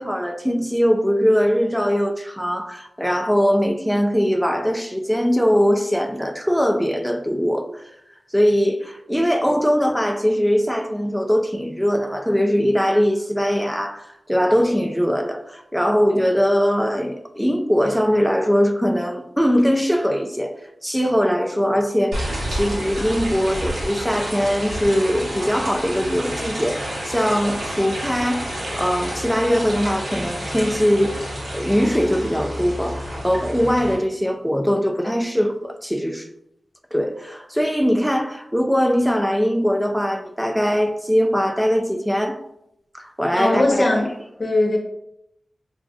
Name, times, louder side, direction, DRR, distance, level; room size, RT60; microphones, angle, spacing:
voice 1, 0.0-7.8 8.3-20.5 20.8-22.2 22.5-31.2 31.5-36.3 36.9-42.4 42.9-43.9, equal, ahead, 0.5 m, -21 dB
sound 1, 22.1-33.9, equal, 80° right, 1.4 m, -29 dB
voice 2, 43.3-44.1 44.4-44.8, left 2 dB, 50° left, 1.0 m, -19 dB
5.9 x 2.4 x 2.4 m
cardioid pair, 55°, 0 cm